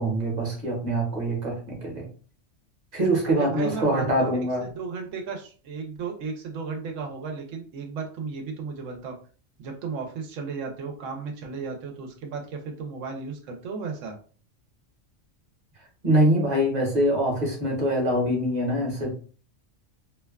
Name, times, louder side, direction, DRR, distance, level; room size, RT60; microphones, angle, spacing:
voice 1, 0.0-2.1 2.9-4.6 16.0-19.1, right 1 dB, 40° right, 0 dB, 0.9 m, -24 dB
voice 2, 3.2-4.3 4.6-9.1 9.6-14.1, right 5 dB, 85° right, 3 dB, 1.0 m, -34 dB
2.8 x 2.2 x 2.3 m, 0.40 s
omnidirectional pair, 1.3 m